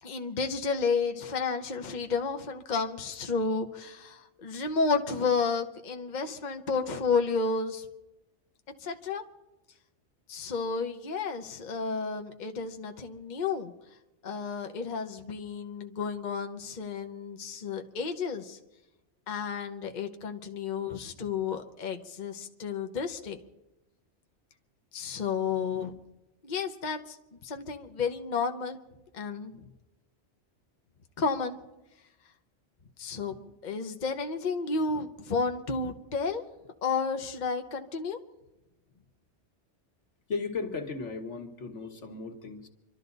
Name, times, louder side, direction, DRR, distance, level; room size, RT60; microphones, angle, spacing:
voice 1, 0.0-7.9 8.8-9.2 10.3-13.7 14.2-18.6 19.3-23.4 24.9-26.0 26.4-27.2 27.4-28.8 29.1-29.7 31.2-31.6 33.0-36.4 36.8-38.2, left 5 dB, 45° left, 5 dB, 1.0 m, -31 dB
voice 2, 40.3-42.7, left 4 dB, 85° left, 4 dB, 1.8 m, -36 dB
27.0 x 12.5 x 4.0 m, 0.95 s
omnidirectional pair, 1.2 m